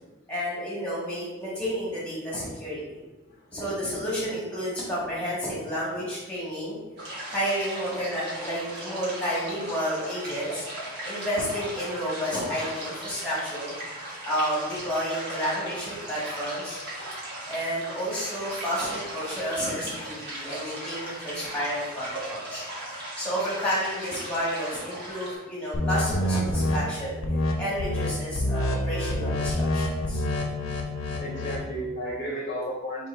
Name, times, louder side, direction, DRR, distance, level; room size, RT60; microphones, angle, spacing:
voice 1, 0.3-3.0 3.5-6.8 7.3-10.6 11.0-13.7 14.2-16.8 17.5-22.6 23.2-27.2 27.6-30.2, equal, 5° left, -7 dB, 1.5 m, -31 dB
sound 1, 7.0-25.3, right 1 dB, 50° right, 1.4 m, -38 dB
sound 2, 25.7-26.8 27.2-27.5 27.8-28.1 28.3-31.6, left 1 dB, 65° left, 0.7 m, -27 dB
voice 2, 31.1-33.1, equal, 35° left, -4 dB, 0.8 m, -34 dB
3.8 x 3.1 x 4.2 m, 1.2 s
head